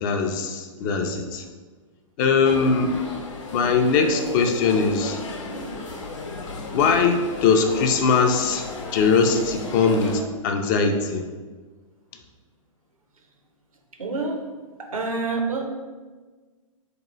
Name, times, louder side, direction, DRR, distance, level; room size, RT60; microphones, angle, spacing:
voice 1, 0.0-1.4 2.2-3.0 3.5-5.2 6.7-11.2, left 5 dB, 35° left, 5 dB, 0.4 m, -21 dB
sound 1, 2.4-10.2, left 3 dB, 60° left, 0.8 m, -34 dB
voice 2, 14.0-14.4 14.8-15.6, right 3 dB, 80° right, 3 dB, 0.6 m, -27 dB
3.7 x 2.9 x 2.9 m, 1.4 s
figure-of-eight pair, 110°, 17 cm